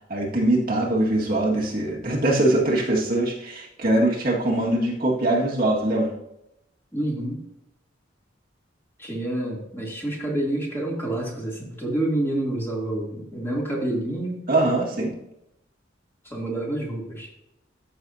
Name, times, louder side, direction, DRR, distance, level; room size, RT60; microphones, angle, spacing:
voice 1, 0.1-6.1 14.5-15.1, right 1 dB, 50° right, -2 dB, 1.8 m, -22 dB
voice 2, 6.9-7.4 9.0-14.4 16.2-17.3, right 1 dB, 15° left, -3 dB, 2.7 m, -28 dB
13.5 x 7.0 x 2.7 m, 0.82 s
head